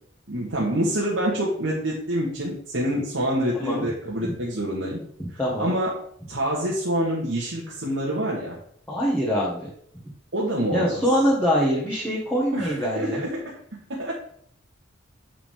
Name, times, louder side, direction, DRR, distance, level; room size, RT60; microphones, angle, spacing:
voice 1, 0.3-5.0 5.3-6.0 6.3-8.6 10.3-11.0 12.5-13.4 13.9-14.1, equal, 80° right, -5 dB, 1.5 m, -26 dB
voice 2, 5.4-5.7 8.9-9.7 10.7-13.2, equal, 10° left, -6 dB, 1.5 m, -24 dB
7.2 x 6.0 x 3.6 m, 0.65 s
head